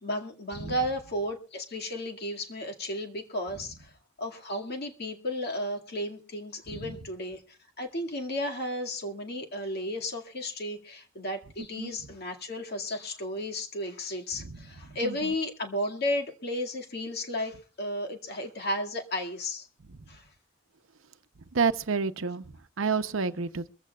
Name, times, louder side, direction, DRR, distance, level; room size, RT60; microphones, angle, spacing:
voice 1, 0.0-3.9 4.2-7.4 7.8-19.7 20.1-20.2, left 1 dB, 55° left, 2.1 m, -33 dB
voice 2, 0.5-0.9 3.5-3.6 6.7-7.0 11.6-12.1 14.3-14.6 15.0-15.4 19.9-20.0 21.5-23.7, right 5 dB, 80° right, 0.8 m, -31 dB
23.0 x 15.0 x 2.4 m
head